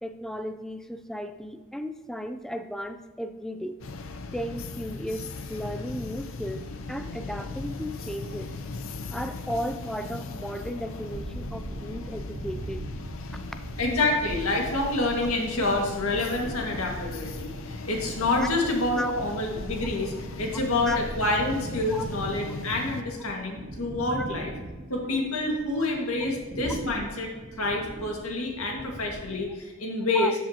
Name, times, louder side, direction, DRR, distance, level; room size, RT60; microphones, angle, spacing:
voice 1, 0.0-3.7 4.3-6.6 6.9-8.5 9.1-12.8 13.3-13.4 18.4-18.5 19.0-19.1 20.9-21.0 21.9-22.0 24.1-24.3 30.1-30.3, equal, ahead, 8 dB, 0.4 m, -34 dB
sound 1, 3.8-23.0, left 3 dB, 65° left, 0.6 m, -38 dB
sound 2, 11.1-29.6, right 1 dB, 35° right, 0.6 m, -40 dB
voice 2, 13.8-24.5 24.9-30.3, left 2 dB, 90° left, 0 dB, 1.9 m, -28 dB
13.0 x 7.4 x 2.9 m, 1.2 s
head